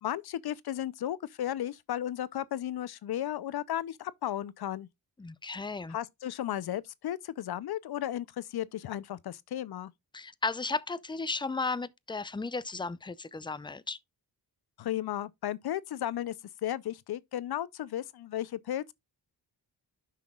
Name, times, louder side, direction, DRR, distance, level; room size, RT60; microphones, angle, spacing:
voice 1, 0.0-4.9 5.9-9.9 14.8-16.3 16.6-18.9, left 11 dB, 70° left, 0.6 m, -34 dB
voice 2, 5.2-6.0 10.1-14.0, left 3 dB, 10° left, 0.5 m, -34 dB
11.0 x 5.8 x 2.3 m
wide cardioid pair, 95°, 39 cm